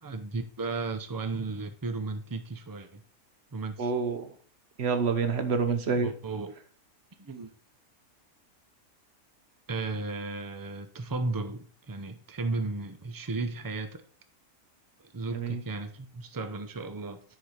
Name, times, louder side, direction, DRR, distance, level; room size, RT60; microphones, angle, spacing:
voice 1, 0.0-3.0 3.5-3.9 6.0-6.5 7.2-7.5 9.7-14.0 15.0-17.2, right 3 dB, 25° right, 9 dB, 0.4 m, -35 dB
voice 2, 3.8-4.3 4.8-6.1 15.3-15.6, right 5 dB, 50° right, 8 dB, 1.2 m, -27 dB
10.0 x 5.0 x 4.2 m, 0.42 s
omnidirectional pair, 1.5 m